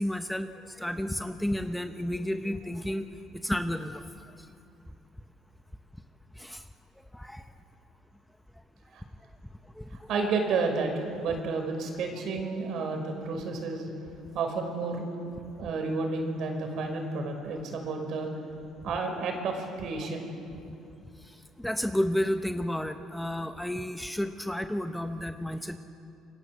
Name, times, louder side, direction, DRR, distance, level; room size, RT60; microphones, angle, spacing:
voice 1, 0.0-3.1 3.3-4.1 4.4-4.5 6.3-6.6 7.1-7.5 9.6-10.1 21.2-25.8, left 1 dB, 5° left, 7 dB, 0.9 m, -32 dB
voice 2, 10.1-13.9 14.3-15.0 15.6-18.3 18.8-20.3, right 4 dB, 60° right, 3 dB, 5.6 m, -31 dB
28.0 x 23.5 x 8.0 m, 2.6 s
cardioid pair, 130°, 0 cm